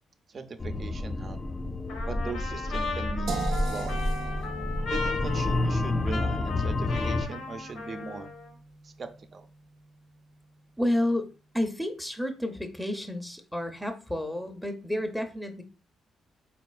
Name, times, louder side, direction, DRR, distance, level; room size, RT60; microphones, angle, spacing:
voice 1, 0.3-1.4 2.0-3.4 3.7-4.0 4.9-8.3 8.8-9.5, right 4 dB, 40° right, 8 dB, 0.6 m, -39 dB
sound 1, 0.6-7.3, left 2 dB, 25° left, 0.3 m, -30 dB
Trumpet, 1.9-8.5, left 4 dB, 85° left, 1.1 m, -37 dB
sound 2, 3.3-9.2, right 3 dB, 75° right, 0.7 m, -39 dB
voice 2, 10.8-11.3 11.5-15.6, left 1 dB, 5° left, 7 dB, 0.7 m, -30 dB
4.6 x 4.2 x 2.3 m, 0.33 s
cardioid pair, 90°, 0 cm